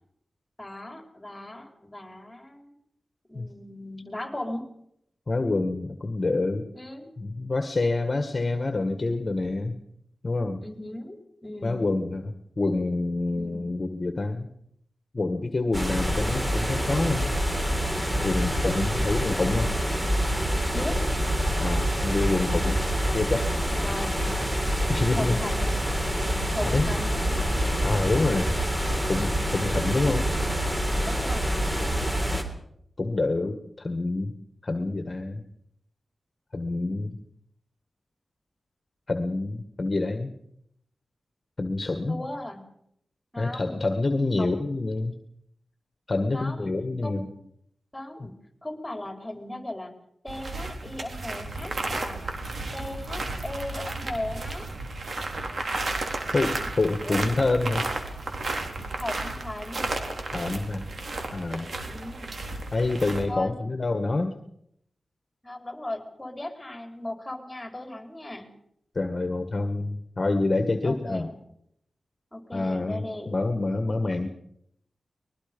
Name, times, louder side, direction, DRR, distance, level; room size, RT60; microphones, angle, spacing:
voice 1, 0.6-2.8 3.3-4.7 6.7-7.1 10.6-11.9 13.3-13.6 20.7-21.0 23.8-24.2 25.1-25.7 26.5-27.2 31.0-31.7 42.1-42.6 43.3-43.8 44.4-44.6 46.3-46.7 47.0-47.4 47.9-48.4 48.6-49.9 50.2-52.2 52.7-54.7 57.0-57.4 59.0-59.9 61.9-62.4 63.3-63.6 65.4-68.5 70.8-71.3 72.3-73.4, left 1 dB, 15° left, 4 dB, 4.5 m, -37 dB
voice 2, 5.3-6.7 7.2-9.8 10.2-10.6 11.6-14.5 15.1-17.3 18.2-19.7 21.6-22.8 23.1-23.5 24.9-25.4 26.7-26.9 27.8-28.5 29.1-30.3 33.0-34.3 34.6-35.4 36.5-37.2 39.1-40.4 41.6-42.2 43.4-45.1 46.1-47.3 56.3-57.8 60.3-60.9 61.3-61.7 62.7-64.4 69.0-71.3 72.5-74.3, left 2 dB, 40° left, 7 dB, 1.7 m, -27 dB
sound 1, 15.7-32.4, equal, 15° right, 3.7 m, -26 dB
sound 2, 50.3-63.2, right 2 dB, 65° right, 3.8 m, -33 dB
23.0 x 21.5 x 5.4 m, 0.74 s
wide cardioid pair, 70°, 0 cm